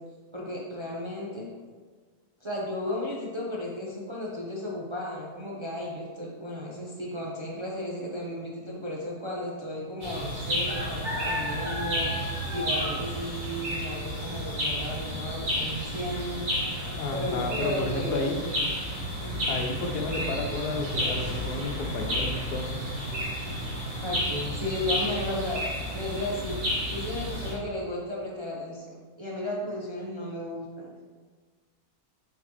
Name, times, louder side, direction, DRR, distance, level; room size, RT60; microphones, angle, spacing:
voice 1, 0.3-1.5 2.4-12.1 12.5-16.4 17.1-18.3 19.2-19.6 19.8-20.2 24.0-25.6 25.9-26.6 26.9-28.9 29.2-30.9, left 1 dB, 25° right, -4 dB, 0.6 m, -34 dB
sound 1, 10.0-27.5, equal, 75° right, 2.5 m, -31 dB
voice 2, 16.9-18.4 19.5-22.7, left 3 dB, 90° left, 3 dB, 1.3 m, -32 dB
7.2 x 4.6 x 3.1 m, 1.5 s
omnidirectional pair, 1.6 m